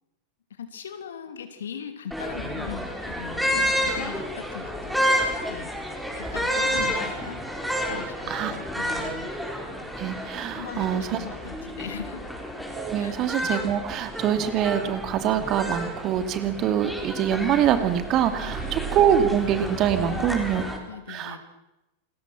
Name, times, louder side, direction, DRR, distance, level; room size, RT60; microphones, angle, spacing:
voice 1, 0.5-5.1 5.5-5.7 6.1-7.4 7.9-9.3 10.6-12.3 13.0-13.2 18.4-18.7 20.0-20.5 20.9-21.4, left 8 dB, 65° left, 8 dB, 3.0 m, -39 dB
sound 1, 2.1-20.8, equal, ahead, 4.8 m, -30 dB
voice 2, 10.0-11.2 12.7-20.6 21.1-21.4, right 9 dB, 35° right, 9 dB, 2.5 m, -24 dB
28.0 x 21.0 x 6.1 m, 0.96 s
figure-of-eight pair, 90°, 0 cm